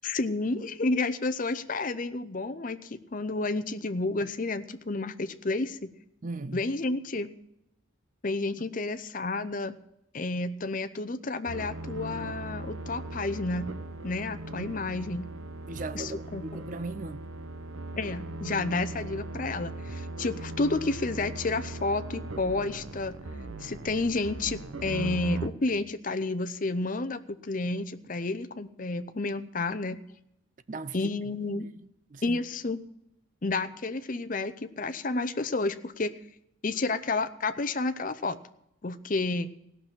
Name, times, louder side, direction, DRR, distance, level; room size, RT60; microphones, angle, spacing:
voice 1, 0.0-5.9 6.5-7.3 8.2-9.8 10.1-13.7 14.0-15.3 15.9-16.4 18.0-23.1 23.6-30.0 30.9-31.6 32.2-32.8 33.4-36.1 36.6-38.4 38.8-39.5, left 3 dB, 40° left, 0.7 m, -30 dB
voice 2, 6.2-6.6 14.6-14.7 15.7-17.2 30.7-30.9 31.5-31.7 32.1-32.4, right 3 dB, 40° right, 0.5 m, -37 dB
sound 1, 11.5-25.5, right 2 dB, 90° right, 1.0 m, -39 dB
16.5 x 6.1 x 8.9 m
head